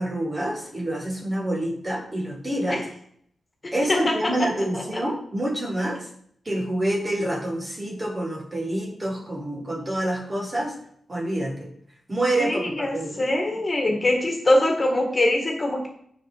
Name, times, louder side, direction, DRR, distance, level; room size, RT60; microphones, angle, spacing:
voice 1, 0.0-2.8 3.7-6.1 6.5-10.7 11.1-11.7 12.1-13.2, right 1 dB, 20° right, 0 dB, 2.0 m, -27 dB
voice 2, 12.4-15.9, left 1 dB, 25° left, 1 dB, 2.1 m, -23 dB
9.2 x 5.5 x 6.2 m, 0.67 s
wide cardioid pair, 145°, 0 cm